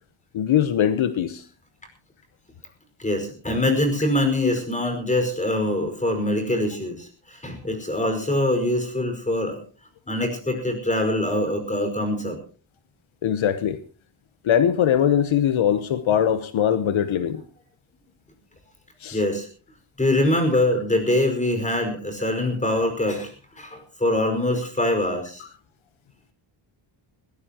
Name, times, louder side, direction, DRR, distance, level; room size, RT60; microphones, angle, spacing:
voice 1, 0.3-1.4 13.2-13.8 14.4-17.4 19.0-19.2, left 9 dB, 70° left, 1.1 m, -21 dB
voice 2, 3.0-9.6 10.1-12.4 19.1-19.5 20.0-25.4, left 1 dB, 15° left, 5.1 m, -24 dB
20.5 x 17.5 x 3.0 m
wide cardioid pair, 145°, 48 cm